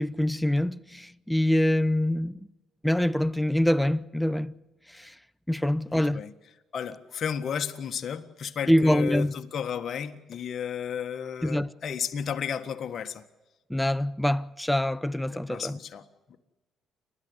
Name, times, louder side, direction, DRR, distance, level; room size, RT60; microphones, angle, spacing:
voice 1, 0.0-2.5 2.8-4.5 4.9-5.1 5.5-6.2 8.7-9.3 11.4-11.7 13.7-15.8, left 1 dB, 5° left, 0.7 m, -25 dB
voice 2, 5.9-6.3 6.7-13.2 15.3-16.4, left 7 dB, 55° left, 1.6 m, -33 dB
29.5 x 12.5 x 8.2 m
cardioid pair, 85°, 0 cm